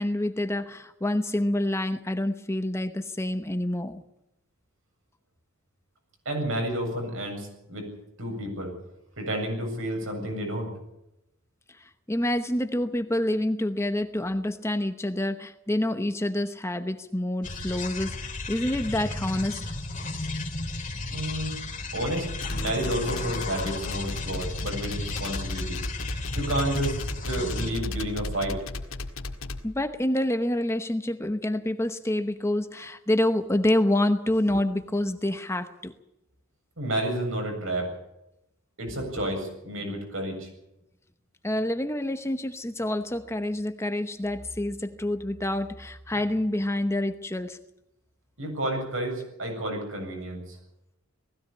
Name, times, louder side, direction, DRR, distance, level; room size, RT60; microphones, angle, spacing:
voice 1, 0.0-4.0 12.1-19.7 29.6-35.9 41.4-47.6, left 1 dB, 15° left, 9 dB, 0.9 m, -27 dB
voice 2, 6.3-7.9 8.2-8.8 9.2-10.7 21.1-21.6 21.9-25.8 26.1-28.6 36.8-37.9 38.8-40.5 48.4-50.6, right 1 dB, 70° right, 2 dB, 7.6 m, -30 dB
sound 1, 17.4-27.7, left 2 dB, 40° left, 2.8 m, -34 dB
sound 2, 22.3-29.6, left 2 dB, 85° left, 1.9 m, -34 dB
19.5 x 16.5 x 8.6 m, 0.87 s
head